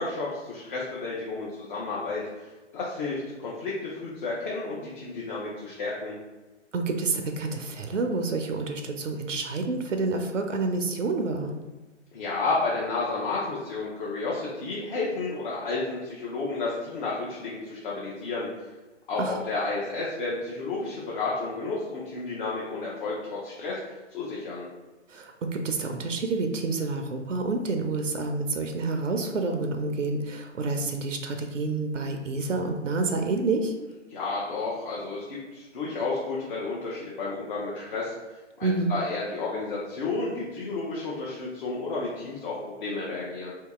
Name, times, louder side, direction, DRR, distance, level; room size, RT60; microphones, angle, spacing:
voice 1, 0.0-6.2 12.1-18.7 19.1-24.7 34.1-38.1 38.6-43.5, left 3 dB, 40° left, -5 dB, 0.7 m, -31 dB
voice 2, 6.7-11.6 19.2-19.4 25.1-33.7 38.6-38.9, right 3 dB, 85° right, 4 dB, 0.6 m, -28 dB
2.8 x 2.7 x 3.5 m, 1.2 s
figure-of-eight pair, 120°, 37 cm